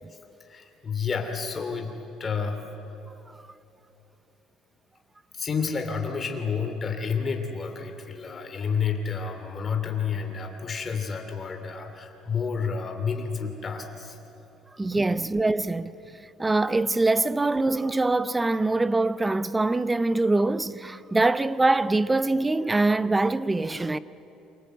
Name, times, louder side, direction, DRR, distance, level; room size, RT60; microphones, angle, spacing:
voice 1, 0.5-1.9 2.2-2.6 5.3-14.2 14.9-15.0, left 6 dB, 25° left, 2.8 m, -30 dB
voice 2, 14.8-15.9 16.4-24.0, right 2 dB, 10° right, 0.6 m, -23 dB
28.0 x 24.0 x 8.2 m
cardioid pair, 155°, 0 cm